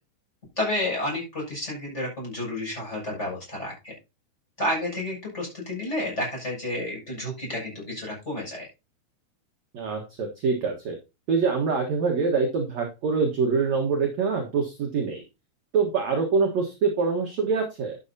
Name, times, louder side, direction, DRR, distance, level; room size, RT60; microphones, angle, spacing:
voice 1, 0.6-3.9 4.6-8.7, left 1 dB, 15° left, -3 dB, 7.1 m, -30 dB
voice 2, 9.7-11.0 11.3-15.2 15.7-18.0, right 5 dB, 55° right, 2 dB, 2.0 m, -25 dB
12.0 x 9.0 x 2.8 m, 0.27 s
omnidirectional pair, 5.2 m